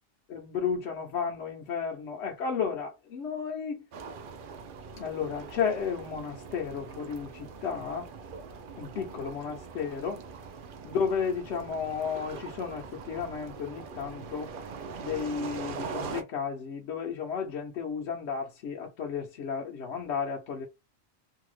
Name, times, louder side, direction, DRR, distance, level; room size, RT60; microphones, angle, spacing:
voice 1, 0.3-3.8 5.0-8.1 8.8-10.2 10.8-14.5 15.0-20.7, left 6 dB, 65° left, 0.9 m, -33 dB
sound 1, 3.9-16.2, right 5 dB, 60° right, 0.6 m, -42 dB
2.7 x 2.2 x 3.1 m
omnidirectional pair, 1.3 m